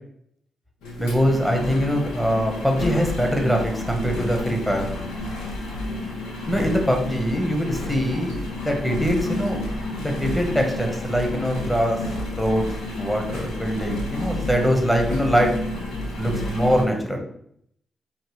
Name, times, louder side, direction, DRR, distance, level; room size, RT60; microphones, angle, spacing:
Engine, 0.8-16.8, left 1 dB, 85° left, 0.8 m, -30 dB
voice 1, 1.0-4.9 6.5-8.4 8.6-9.6 10.0-12.0 12.4-15.5 16.2-17.2, equal, 5° left, 2 dB, 1.3 m, -23 dB
4.6 x 3.1 x 3.2 m, 0.68 s
supercardioid pair, 45°, 0 cm